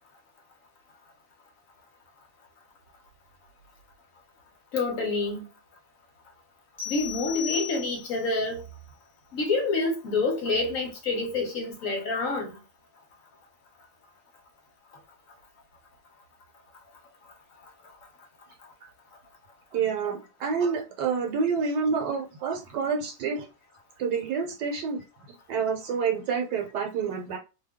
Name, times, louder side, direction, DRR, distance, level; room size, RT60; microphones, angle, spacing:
voice 1, 4.7-5.4 6.9-8.6 9.3-12.6, left 3 dB, 60° left, 0.9 m, -27 dB
sound 1, 6.8-8.3, left 10 dB, 10° left, 0.9 m, -35 dB
voice 2, 19.7-23.5 24.0-25.0 25.5-27.4, right 5 dB, 75° right, 1.2 m, -28 dB
2.8 x 2.3 x 3.4 m
omnidirectional pair, 2.0 m